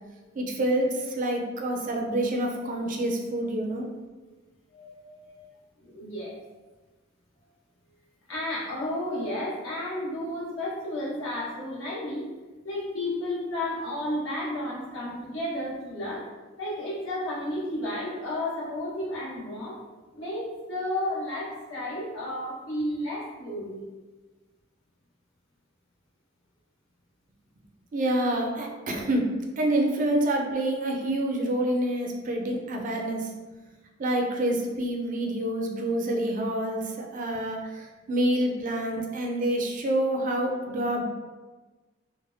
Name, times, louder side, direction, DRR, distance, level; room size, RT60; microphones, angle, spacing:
voice 1, 0.3-3.9 27.9-29.3 29.6-33.3 34.0-41.0, right 1 dB, 40° right, 1 dB, 0.4 m, -27 dB
voice 2, 4.7-5.5 5.8-6.4 8.3-12.3 12.6-16.2 16.6-19.8 20.1-23.8, left 1 dB, 85° left, -8 dB, 1.2 m, -32 dB
3.2 x 2.1 x 2.5 m, 1.3 s
head